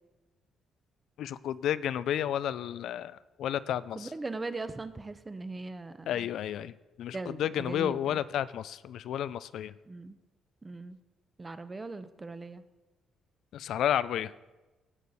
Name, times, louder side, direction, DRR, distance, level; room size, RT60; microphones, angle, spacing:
voice 1, 1.2-4.1 6.1-6.7 7.0-9.7 13.5-14.3, left 10 dB, 75° left, 16 dB, 0.3 m, -31 dB
voice 2, 3.9-6.3 7.1-8.2 9.9-10.2 10.6-11.0 11.4-12.6, right 3 dB, 25° right, 12 dB, 0.7 m, -39 dB
16.5 x 6.4 x 4.1 m, 1.1 s
cardioid pair, 90°, 0 cm